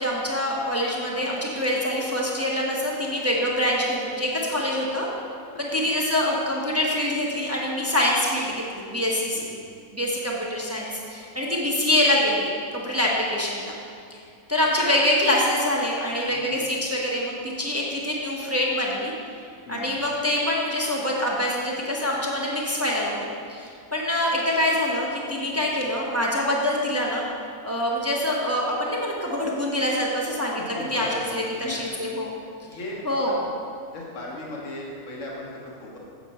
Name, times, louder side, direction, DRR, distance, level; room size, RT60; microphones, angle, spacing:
voice 1, 0.0-5.1 5.6-9.5 9.9-13.7 14.1-14.2 14.5-19.1 19.7-27.2 27.6-32.3 33.0-33.4, left 1 dB, 10° right, -3 dB, 0.9 m, -25 dB
voice 2, 16.3-16.6 19.6-19.9 25.5-25.7 30.7-32.0 32.6-33.4 33.9-36.0, left 2 dB, 60° left, -3 dB, 1.6 m, -37 dB
8.0 x 6.6 x 5.5 m, 2.3 s
omnidirectional pair, 1.5 m